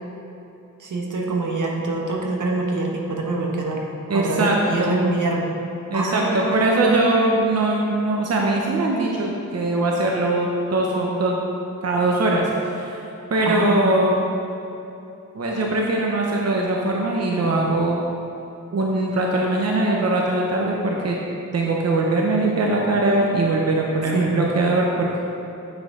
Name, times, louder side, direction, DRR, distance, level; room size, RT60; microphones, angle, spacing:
voice 1, 0.8-5.5 5.9-7.1 13.4-13.7 24.1-24.3, right 3 dB, 70° right, 0 dB, 1.1 m, -25 dB
voice 2, 4.1-5.1 5.9-11.4 11.8-13.0 13.3-14.1 15.3-18.0 18.7-21.2 21.5-25.2, right 2 dB, 50° right, -2 dB, 0.9 m, -21 dB
7.4 x 6.1 x 3.8 m, 2.8 s
wide cardioid pair, 80°, 32 cm